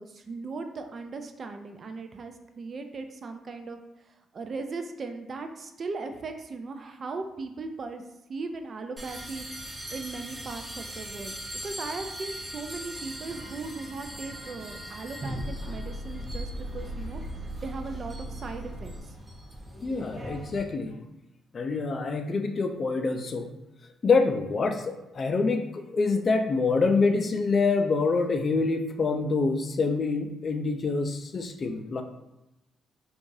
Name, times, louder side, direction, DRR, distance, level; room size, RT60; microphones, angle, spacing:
voice 1, 0.0-3.8 4.3-8.0 8.3-11.3 11.6-17.2 17.6-18.9, right 3 dB, 45° right, 6 dB, 0.4 m, -38 dB
sound 1, 9.0-20.6, right 1 dB, 20° right, 0.8 m, -40 dB
sound 2, 13.0-19.0, equal, 80° right, 0.8 m, -40 dB
voice 2, 19.8-21.0 21.5-23.5 24.0-32.0, left 4 dB, 45° left, 6 dB, 0.4 m, -26 dB
4.6 x 2.4 x 2.6 m, 0.92 s
cardioid pair, 90°, 0 cm